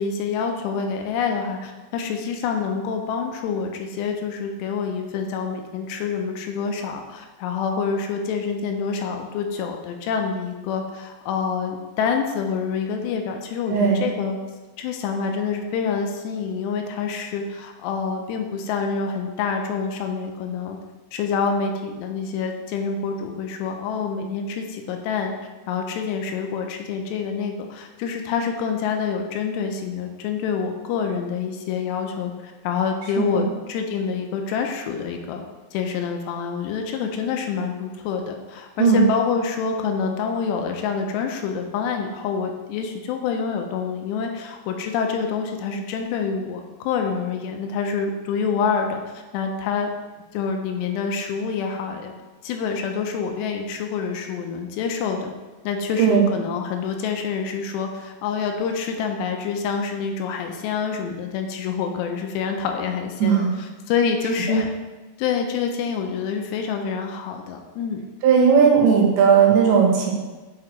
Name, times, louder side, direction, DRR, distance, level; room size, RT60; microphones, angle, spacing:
voice 1, 0.0-14.4 14.8-20.8 21.1-25.3 25.7-35.4 35.7-49.9 50.3-52.1 52.4-55.3 55.6-64.7 65.2-68.0, left 6 dB, 85° left, 3 dB, 2.7 m, -27 dB
voice 2, 13.7-14.0 33.2-33.5 38.8-39.1 56.0-56.3 63.2-63.5 64.5-64.6 68.2-70.1, right 6 dB, 90° right, 0 dB, 3.3 m, -17 dB
7.7 x 4.8 x 3.1 m, 1.2 s
omnidirectional pair, 5.0 m